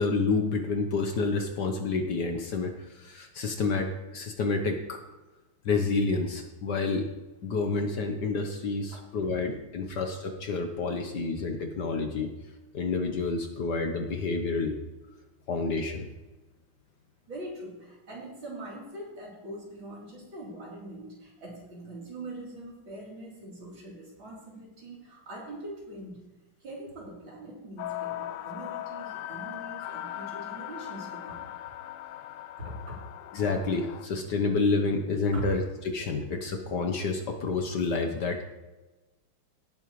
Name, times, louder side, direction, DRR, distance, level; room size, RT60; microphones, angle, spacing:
voice 1, 0.0-5.0 5.6-7.1 7.4-12.3 12.7-14.8 15.5-16.1 33.3-38.5, left 3 dB, 60° left, 5 dB, 1.5 m, -29 dB
voice 2, 8.9-9.3 17.3-26.2 26.6-31.5 32.6-33.0 35.3-35.4, right 1 dB, 65° right, -5 dB, 4.5 m, -42 dB
sound 1, 27.8-34.1, left 13 dB, 90° left, 1.5 m, -39 dB
17.5 x 8.9 x 3.2 m, 1.1 s
omnidirectional pair, 2.3 m